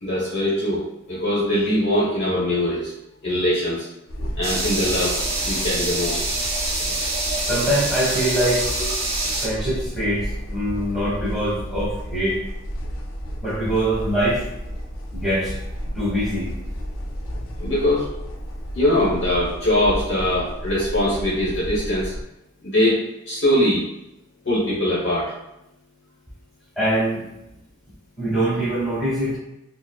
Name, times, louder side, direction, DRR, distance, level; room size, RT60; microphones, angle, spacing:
voice 1, 0.0-2.9 3.2-3.9 4.4-5.2 5.4-6.2 17.6-18.1 18.7-22.1 22.6-23.0 23.3-23.8 24.4-25.3, left 1 dB, 60° left, -8 dB, 1.0 m, -22 dB
sound 1, 4.1-22.2, equal, 85° left, 0.5 m, -32 dB
sound 2, 4.4-9.5, right 2 dB, 30° right, 0.8 m, -26 dB
voice 2, 7.5-8.6 9.4-12.4 13.4-14.4 15.1-15.5 15.9-16.5 26.8-27.2 28.2-29.4, right 1 dB, ahead, -6 dB, 1.2 m, -23 dB
5.0 x 2.0 x 2.2 m, 0.89 s
head